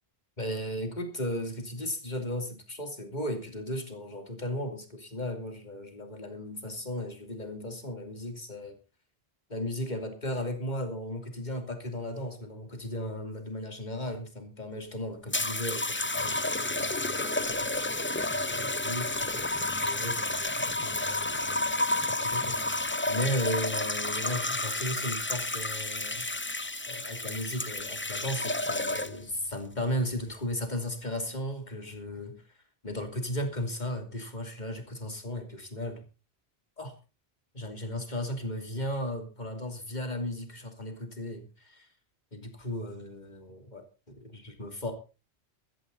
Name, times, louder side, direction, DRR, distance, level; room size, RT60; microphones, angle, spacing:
voice 1, 0.4-8.7 9.5-26.2 26.9-32.4 32.8-36.0 36.8-36.9 37.5-41.9 42.3-43.8 44.2-44.9, left 1 dB, 40° left, 6 dB, 3.0 m, -36 dB
sound 1, 15.3-29.3 30.2-30.5, left 2 dB, 15° left, 0.5 m, -31 dB
15.0 x 14.0 x 4.0 m, 0.32 s
omnidirectional pair, 1.1 m